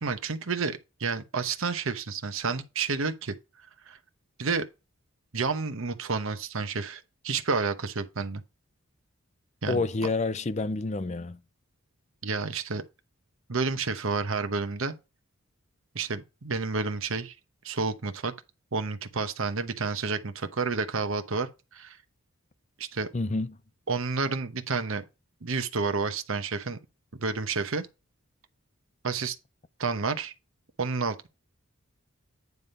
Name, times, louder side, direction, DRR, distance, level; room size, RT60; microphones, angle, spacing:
voice 1, 0.0-3.4 3.9-4.0 4.4-4.7 5.3-8.4 9.6-9.8 12.2-12.8 13.5-14.9 15.9-17.3 17.6-18.3 18.7-22.0 22.8-23.1 23.9-25.0 25.4-26.8 27.1-27.9 29.0-29.4 29.8-30.3 30.8-31.3, right 4 dB, 70° right, 0.9 m, -30 dB
voice 2, 9.7-11.4 23.1-23.6, left 3 dB, 30° left, 0.5 m, -28 dB
9.5 x 3.5 x 5.5 m
head